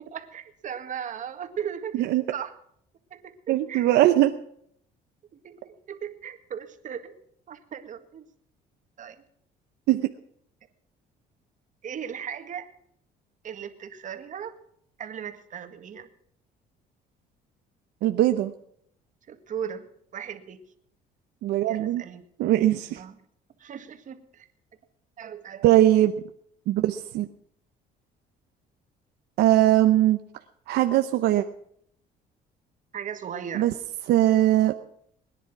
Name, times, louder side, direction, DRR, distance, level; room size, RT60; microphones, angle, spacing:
voice 1, 0.1-2.0 2.3-2.6 3.1-3.9 5.4-8.2 9.0-9.2 11.8-12.7 13.4-14.5 15.0-16.1 19.3-20.6 21.7-22.2 23.0-23.2 23.6-24.5 25.2-25.7 32.9-33.7, right 8 dB, 50° right, 7 dB, 1.9 m, -37 dB
voice 2, 3.5-4.3 9.9-10.1 18.0-18.5 21.4-22.0 22.4-23.0 25.6-26.1 26.7-27.3 29.4-30.2 30.7-31.4 33.5-33.7 34.1-34.7, right 14 dB, 80° right, 8 dB, 0.8 m, -20 dB
21.0 x 10.0 x 5.9 m, 0.69 s
cardioid pair, 110°, 17 cm